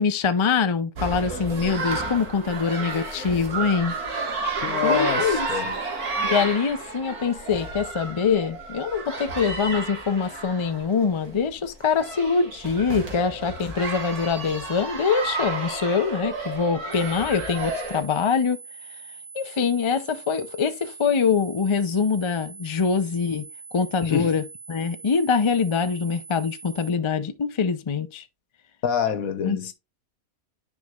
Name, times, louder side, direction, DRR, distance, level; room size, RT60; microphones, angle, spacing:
voice 1, 0.0-4.0 4.8-5.5 6.2-18.6 19.3-23.4 23.7-28.2 29.4-29.6, left 5 dB, 50° left, 0.3 m, -24 dB
sound 1, 1.0-18.0, right 3 dB, 85° right, 2.2 m, -31 dB
voice 2, 4.6-5.7 24.0-24.4 28.8-29.7, left 8 dB, 75° left, 1.4 m, -26 dB
sound 2, 16.9-26.9, right 4 dB, 45° right, 1.3 m, -43 dB
9.6 x 4.8 x 2.4 m
omnidirectional pair, 1.5 m